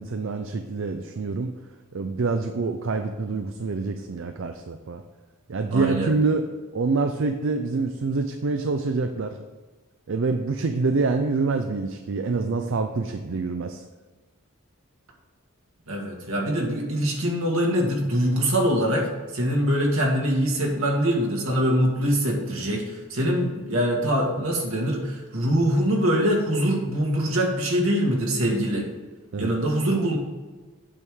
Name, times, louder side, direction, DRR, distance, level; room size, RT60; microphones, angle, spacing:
voice 1, 0.0-1.5 1.9-5.0 5.5-6.5 6.7-9.4 10.1-13.8 29.3-29.6, right 3 dB, 60° right, 7 dB, 0.4 m, -26 dB
voice 2, 5.7-6.1 15.9-19.1 19.3-28.9 29.4-30.2, equal, 80° right, -1 dB, 1.8 m, -23 dB
8.4 x 3.6 x 6.3 m, 1.3 s
head